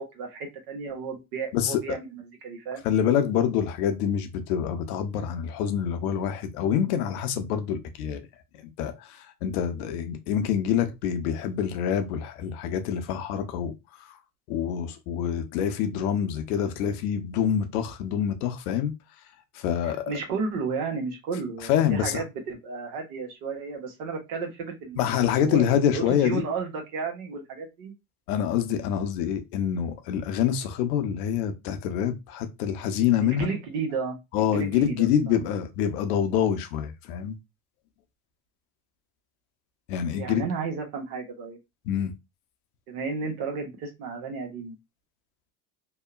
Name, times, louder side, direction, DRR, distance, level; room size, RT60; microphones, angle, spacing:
voice 1, 0.0-2.8 19.8-25.1 25.4-27.9 33.2-35.5 40.2-41.6 42.9-44.8, right 4 dB, 70° right, 1.0 m, -33 dB
voice 2, 1.5-2.0 2.8-8.2 8.8-13.7 14.1-14.2 14.5-18.9 19.5-20.0 21.7-22.2 25.0-26.4 28.3-33.5 34.3-37.4 39.9-40.4 41.9-42.1, left 9 dB, 70° left, 0.7 m, -26 dB
2.8 x 2.1 x 2.4 m
hypercardioid pair, 75°, 46 cm